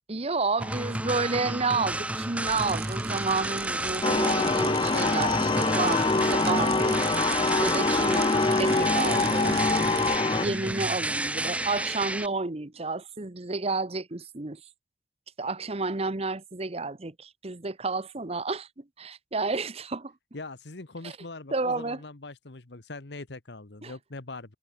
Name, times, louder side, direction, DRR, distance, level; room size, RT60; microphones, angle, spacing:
voice 1, 0.1-7.0 7.6-8.3 8.6-9.6 10.4-14.6 15.4-20.1 21.0-21.1 21.5-22.0 23.8-23.9, right 3 dB, 35° right, 1.1 m, -31 dB
sound 1, 0.6-12.3, right 1 dB, 5° right, 1.2 m, -31 dB
sound 2, 2.5-10.2, right 6 dB, 60° right, 5.5 m, -39 dB
sound 3, 4.0-10.5, left 3 dB, 30° left, 0.7 m, -24 dB
voice 2, 10.3-10.7 20.3-24.5, left 2 dB, 70° left, 1.4 m, -42 dB
head